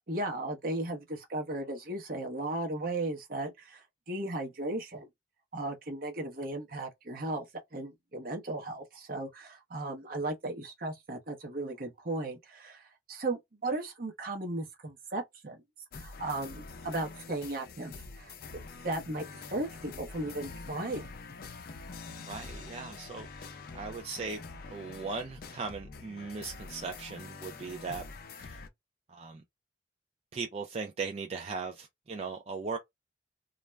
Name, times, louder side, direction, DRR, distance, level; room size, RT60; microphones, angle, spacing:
voice 1, 0.1-5.1 5.5-7.4 7.7-15.6 15.9-21.1, right 2 dB, 55° right, 0.9 m, -36 dB
sound 1, 15.9-28.7, left 4 dB, 55° left, 0.5 m, -46 dB
voice 2, 22.3-24.4 24.7-28.0 28.4-28.6 29.1-29.4 30.3-32.8, right 4 dB, 35° right, 0.4 m, -38 dB
2.4 x 2.1 x 3.2 m
head